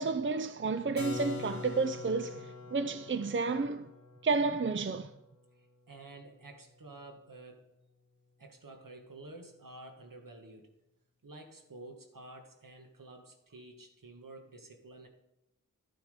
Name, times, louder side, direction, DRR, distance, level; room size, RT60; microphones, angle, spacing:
voice 1, 0.0-3.9 4.2-5.1, right 4 dB, 35° right, 0.5 m, -31 dB
Keyboard (musical), 1.0-6.6, left 4 dB, 55° left, 1.0 m, -45 dB
voice 2, 5.5-7.7 8.4-10.7 11.2-15.1, right 2 dB, 75° right, 1.8 m, -51 dB
12.5 x 8.1 x 5.1 m
wide cardioid pair, 65°, 33 cm